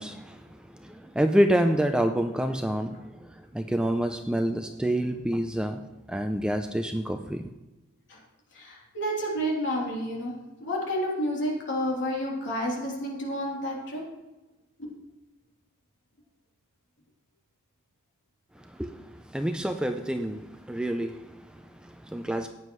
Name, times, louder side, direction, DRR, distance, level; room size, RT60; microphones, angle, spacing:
voice 1, 0.0-5.8 6.1-7.4 18.6-22.5, equal, 5° right, 6 dB, 0.4 m, -28 dB
voice 2, 8.5-10.3 10.6-14.0 14.8-14.9, equal, 55° left, -3 dB, 3.3 m, -30 dB
14.5 x 9.3 x 3.2 m, 1.1 s
head